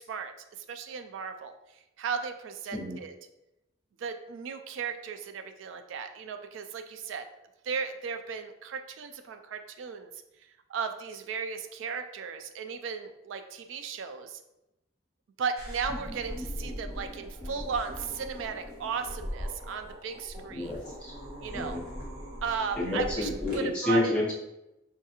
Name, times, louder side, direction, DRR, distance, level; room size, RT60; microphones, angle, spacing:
voice 1, 0.0-1.5 2.0-3.2 4.0-7.3 7.6-10.1 10.7-14.4 15.4-20.7 21.4-21.8 22.4-24.2, right 6 dB, 80° right, 8 dB, 0.3 m, -36 dB
sound 1, 15.6-23.6, equal, 50° right, 1.4 m, -40 dB
voice 2, 20.5-21.1 21.5-21.8 22.8-24.3, left 1 dB, 5° left, -6 dB, 0.9 m, -29 dB
4.5 x 2.3 x 2.8 m, 0.91 s
head